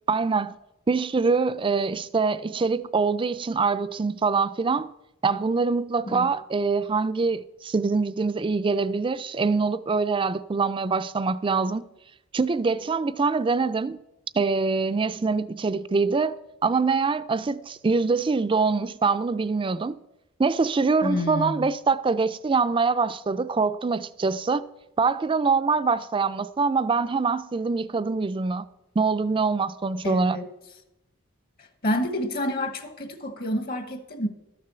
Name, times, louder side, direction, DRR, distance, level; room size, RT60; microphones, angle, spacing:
voice 1, 0.1-0.6 0.9-4.9 5.2-11.8 12.3-14.0 14.3-16.3 16.6-19.9 20.4-24.6 25.0-28.6 29.0-30.4, right 4 dB, 25° right, 0.4 m, -24 dB
voice 2, 21.0-21.7 30.0-30.4 31.8-34.3, left 1 dB, 50° left, 1.1 m, -28 dB
12.5 x 6.7 x 6.8 m
head